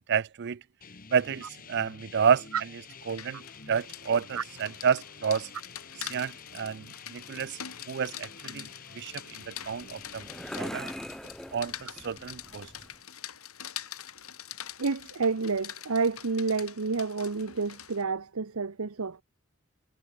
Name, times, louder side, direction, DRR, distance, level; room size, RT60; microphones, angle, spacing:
voice 1, 0.1-0.6 1.1-3.4 3.7-5.5 6.0-7.6 7.9-8.7 9.0-10.3 10.5-10.9 11.5-12.7, right 7 dB, 50° right, 0.4 m, -30 dB
sound 1, 0.8-10.6, left 5 dB, 40° left, 1.5 m, -49 dB
Rain, 2.9-18.0, left 10 dB, 90° left, 6.1 m, -44 dB
sound 2, 9.4-13.0, equal, ahead, 0.7 m, -42 dB
voice 2, 14.8-19.2, right 4 dB, 90° right, 0.9 m, -29 dB
head